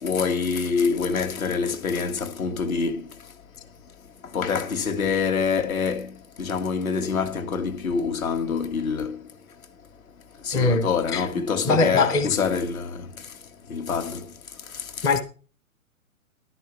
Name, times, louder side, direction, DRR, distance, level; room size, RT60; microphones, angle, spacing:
voice 1, 0.0-3.0 4.3-6.1 6.4-9.1 10.5-13.0 13.7-14.2, left 5 dB, 75° left, 2.2 m, -25 dB
voice 2, 10.5-11.3 11.6-12.3 15.0-15.2, left 3 dB, 10° left, 0.5 m, -22 dB
13.0 x 11.0 x 3.3 m
hypercardioid pair, 130°, 42 cm